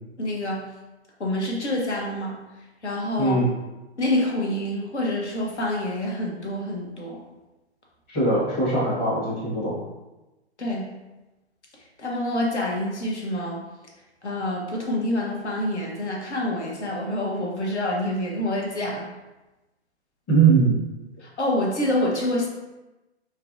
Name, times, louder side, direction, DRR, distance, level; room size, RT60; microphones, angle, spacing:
voice 1, 0.2-0.6 1.2-2.4 2.8-3.4 4.0-7.2 10.6-10.9 12.0-13.6 14.2-19.1 21.2-22.5, left 1 dB, 85° left, -2 dB, 0.8 m, -27 dB
voice 2, 8.1-9.7 20.3-20.8, right 4 dB, 25° left, -7 dB, 0.9 m, -20 dB
2.5 x 2.1 x 2.5 m, 1.0 s
figure-of-eight pair, 125°, 33 cm